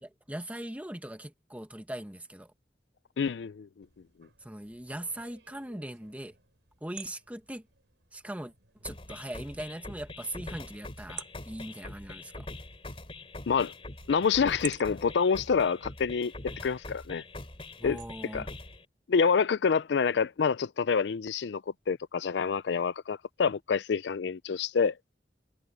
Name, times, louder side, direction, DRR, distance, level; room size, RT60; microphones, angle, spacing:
voice 1, 0.0-2.5 4.4-6.3 6.8-7.6 8.1-8.5 8.8-12.5 17.8-18.5, right 1 dB, 10° right, 1.3 m, -40 dB
voice 2, 3.2-3.7 13.5-13.7 14.1-16.3 16.6-17.2 17.8-18.5 19.1-21.6 21.9-24.9, left 6 dB, 75° left, 0.4 m, -27 dB
sound 1, 3.8-18.4, right 10 dB, 85° right, 4.9 m, -52 dB
sound 2, 8.8-18.8, left 2 dB, 35° left, 2.8 m, -43 dB
head